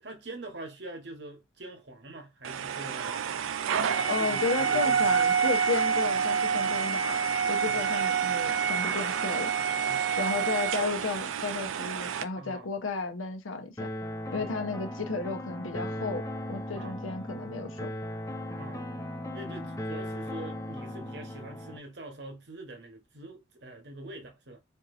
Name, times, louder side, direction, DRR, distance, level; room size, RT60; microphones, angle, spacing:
voice 1, 0.0-3.2 3.9-5.2 7.7-7.8 9.9-10.1 12.3-12.7 14.3-14.6 16.7-17.1 18.6-18.8 19.3-24.6, right 2 dB, 55° right, 1.1 m, -44 dB
sound 1, 2.4-12.2, right 7 dB, 85° right, 0.4 m, -28 dB
voice 2, 4.1-7.2 7.5-9.5 10.2-13.9 14.3-18.0, left 4 dB, 85° left, 0.8 m, -33 dB
sound 2, 13.8-21.8, left 1 dB, 15° left, 0.4 m, -37 dB
4.4 x 2.8 x 2.5 m
head